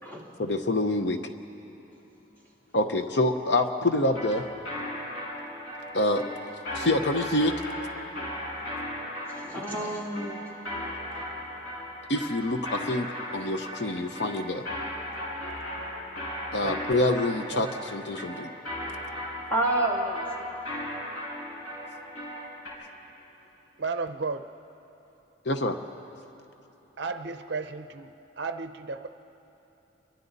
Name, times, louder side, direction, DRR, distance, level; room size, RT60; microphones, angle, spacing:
voice 1, 0.4-1.2 2.7-4.4 5.9-6.2 6.7-7.5 12.1-13.1 13.3-14.6 16.5-18.5 25.5-25.8, left 1 dB, 60° left, 7 dB, 0.8 m, -26 dB
sound 1, 4.1-22.7, left 1 dB, 90° left, 5.9 m, -37 dB
voice 2, 9.3-10.4 19.5-20.6, right 1 dB, 10° left, -4 dB, 3.0 m, -29 dB
voice 3, 17.5-17.8 23.8-24.5 27.0-29.1, right 4 dB, 60° right, 9 dB, 0.7 m, -34 dB
30.0 x 23.5 x 4.1 m, 3.0 s
head